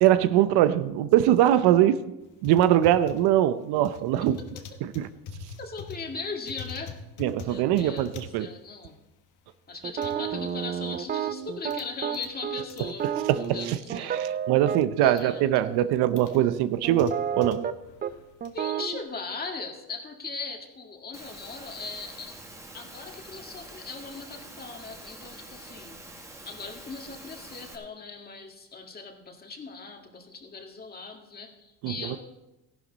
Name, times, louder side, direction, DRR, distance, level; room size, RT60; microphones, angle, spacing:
voice 1, 0.0-2.0 2.4-4.4 5.0-5.1 7.2-8.5 13.3-13.4 13.7-17.6 31.8-31.9, right 12 dB, 70° right, 0.7 m, -22 dB
sound 1, 2.2-12.4 12.7-14.3 14.6-15.3 15.8-18.7, left 4 dB, 50° left, 1.5 m, -45 dB
voice 2, 4.2-4.7 5.6-7.0 7.5-9.0 9.7-14.2 15.0-15.8 18.5-26.0 26.5-32.2, left 4 dB, 25° left, 1.9 m, -39 dB
sound 2, 9.8-15.2 15.6-15.8 16.3-17.7 18.0-18.1 18.4-19.0, right 8 dB, 25° right, 0.4 m, -31 dB
Engine / Mechanisms, 21.1-27.8, right 1 dB, 5° right, 1.7 m, -46 dB
14.5 x 11.5 x 4.0 m
cardioid pair, 125°, 40 cm